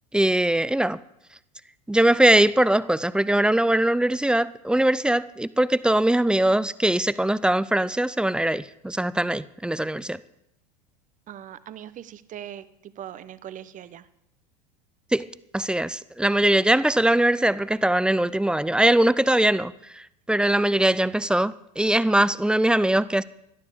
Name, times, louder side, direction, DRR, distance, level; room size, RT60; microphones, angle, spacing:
voice 1, 0.1-1.0 1.9-10.2 15.1-15.3 15.5-23.2, right 1 dB, 5° right, 0.6 m, -21 dB
voice 2, 11.3-14.1, right 10 dB, 35° right, 1.0 m, -40 dB
18.0 x 12.0 x 5.0 m
hypercardioid pair, 85°, 21 cm